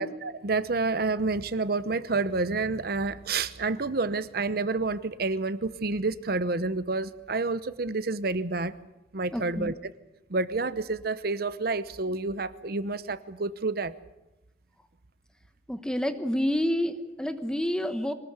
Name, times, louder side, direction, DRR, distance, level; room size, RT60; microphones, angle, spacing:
voice 1, 0.0-8.8 9.1-9.9 10.3-13.9, right 3 dB, 60° right, 14 dB, 0.8 m, -29 dB
voice 2, 9.3-9.7 15.7-18.1, equal, 5° left, 8 dB, 1.1 m, -28 dB
23.5 x 19.5 x 8.1 m, 0.96 s
head